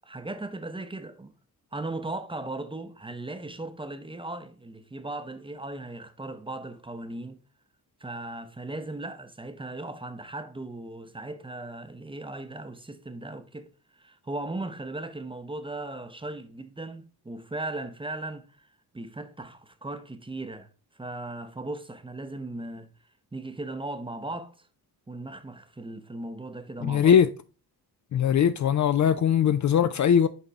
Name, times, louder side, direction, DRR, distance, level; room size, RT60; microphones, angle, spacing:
voice 1, 0.0-1.3 1.7-7.4 8.0-18.7 18.9-20.7 20.9-22.9 23.3-24.7 25.1-27.1, right 2 dB, 15° right, 0.7 m, -37 dB
voice 2, 26.8-27.3 28.1-30.3, left 8 dB, 50° left, 0.4 m, -21 dB
6.9 x 4.0 x 3.5 m
cardioid pair, 95°, 39 cm